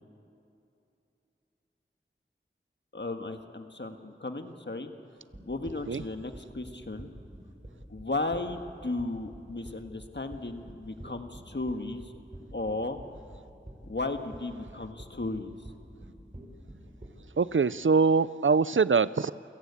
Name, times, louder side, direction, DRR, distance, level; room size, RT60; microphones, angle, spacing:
voice 1, 2.9-4.9 5.4-7.1 7.9-12.1 12.5-13.0 13.9-15.6, left 2 dB, 60° left, 6 dB, 1.6 m, -35 dB
sound 1, 5.3-17.2, right 1 dB, 35° right, 4.7 m, -47 dB
voice 2, 17.4-19.3, right 5 dB, 75° right, 17 dB, 0.5 m, -23 dB
28.5 x 16.5 x 8.4 m, 2.7 s
wide cardioid pair, 40°, 20 cm